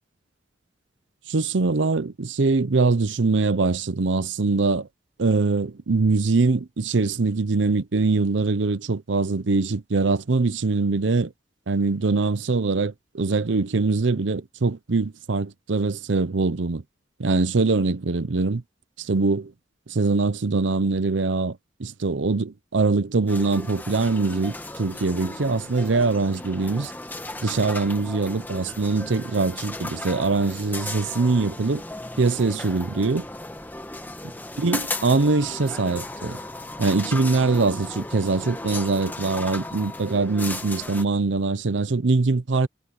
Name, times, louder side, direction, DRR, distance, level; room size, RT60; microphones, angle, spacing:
voice 1, 1.3-4.9 5.2-11.3 11.7-16.8 17.2-18.6 19.0-19.5 19.9-26.9 27.4-31.8 32.2-33.3 34.6-36.4 36.8-42.7, right 3 dB, 85° right, 0.7 m, -23 dB
sound 1, 23.3-41.0, left 2 dB, 10° left, 1.7 m, -36 dB
head